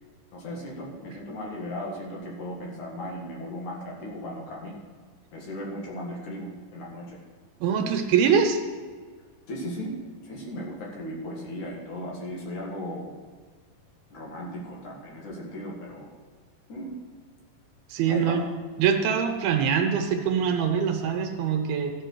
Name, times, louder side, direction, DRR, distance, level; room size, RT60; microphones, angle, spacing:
voice 1, 0.3-4.8 5.3-7.2 9.5-10.0 10.2-13.1 14.1-16.1 16.7-16.9 18.1-18.5, equal, 55° left, -2 dB, 3.0 m, -36 dB
voice 2, 7.6-8.6 17.9-18.4 18.8-21.9, right 7 dB, 80° right, 5 dB, 2.9 m, -23 dB
14.0 x 6.2 x 6.3 m, 1.5 s
omnidirectional pair, 4.4 m